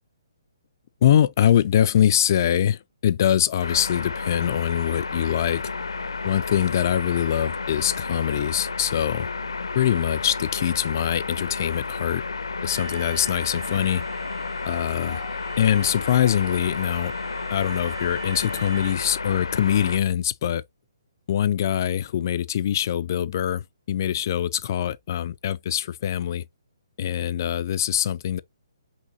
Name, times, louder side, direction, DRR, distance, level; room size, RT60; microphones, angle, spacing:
voice 1, 1.0-5.6 6.2-9.3 9.7-12.2 12.6-14.0 14.6-15.2 15.6-17.1 17.5-20.6 21.3-26.4 27.0-28.4, left 10 dB, 45° left, 0.3 m, -23 dB
sound 1, 3.6-20.0, left 4 dB, 85° left, 0.7 m, -32 dB
Alarm, 12.7-18.9, right 5 dB, 70° right, 0.7 m, -42 dB
5.7 x 2.8 x 2.6 m
figure-of-eight pair, 140°, 2 cm